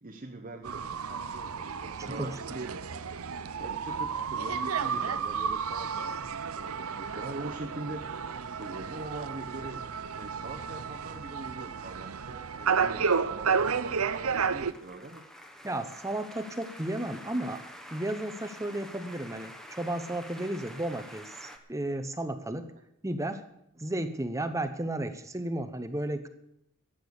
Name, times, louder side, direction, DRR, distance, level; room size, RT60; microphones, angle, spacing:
voice 1, 0.0-3.0 3.6-6.1 6.5-8.1 8.5-9.9 10.1-15.2, right 2 dB, 40° right, 2 dB, 1.0 m, -42 dB
sound 1, 0.6-14.7, right 6 dB, 80° right, 0.7 m, -32 dB
sound 2, 12.3-21.6, equal, ahead, 1.2 m, -48 dB
voice 2, 15.6-17.6 17.9-22.7 23.0-23.4 23.8-26.3, right 1 dB, 15° right, 10 dB, 0.9 m, -33 dB
13.5 x 8.9 x 8.1 m, 0.78 s
head